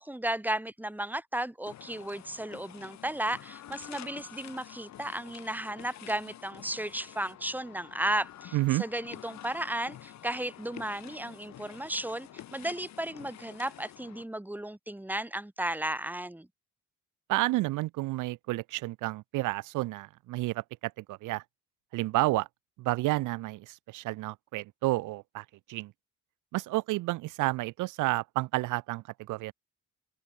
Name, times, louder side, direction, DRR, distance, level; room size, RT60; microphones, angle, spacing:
voice 1, 0.0-16.5, right 1 dB, 5° right, 2.5 m, -34 dB
sound 1, 1.7-14.2, left 12 dB, 65° left, 1.3 m, -49 dB
voice 2, 8.5-8.8 17.3-21.4 21.9-22.5 22.8-25.9 26.5-29.5, right 19 dB, 85° right, 0.6 m, -30 dB
open air
cardioid pair, 90°, 30 cm